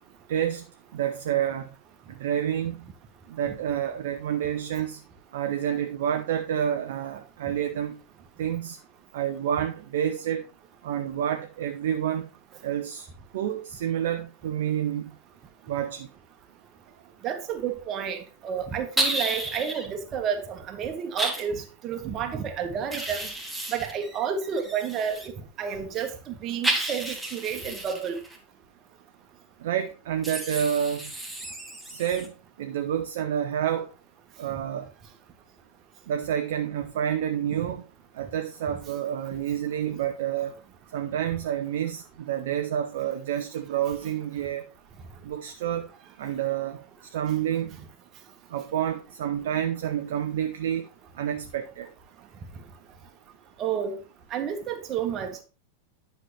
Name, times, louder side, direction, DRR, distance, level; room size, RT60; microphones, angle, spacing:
voice 1, 0.3-0.6 0.9-1.7 2.2-2.8 3.3-5.0 5.3-8.0 8.4-8.8 9.1-10.4 10.8-12.3 12.6-13.1 13.3-15.0 15.7-16.1 29.6-31.1 31.9-33.9 34.4-34.9 36.1-37.8 38.1-40.5 40.9-44.6 45.2-45.9 46.2-46.8 47.1-47.8 48.5-50.8 51.2-51.9, right 10 dB, 55° right, 0.7 m, -28 dB
voice 2, 17.2-23.3 23.7-25.3 25.6-28.2 53.6-54.0 54.3-55.4, right 7 dB, 30° right, 1.4 m, -30 dB
sound 1, 19.0-19.9 21.2-21.4 22.9-25.3 26.6-28.4 30.2-32.3, right 1 dB, ahead, 1.7 m, -31 dB
10.0 x 5.7 x 3.3 m
figure-of-eight pair, 90°, 0 cm